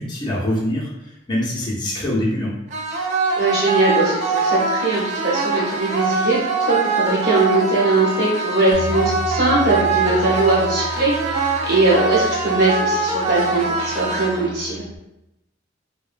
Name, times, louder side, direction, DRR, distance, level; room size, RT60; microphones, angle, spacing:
voice 1, 0.0-2.5, left 1 dB, 25° left, -4 dB, 0.6 m, -24 dB
sound 1, 2.7-14.7, right 3 dB, 40° right, 0.3 m, -23 dB
voice 2, 3.4-14.8, right 2 dB, 60° right, -6 dB, 1.0 m, -20 dB
Bass guitar, 8.7-15.0, right 2 dB, 80° left, 0.4 m, -34 dB
2.8 x 2.1 x 2.5 m, 0.90 s
head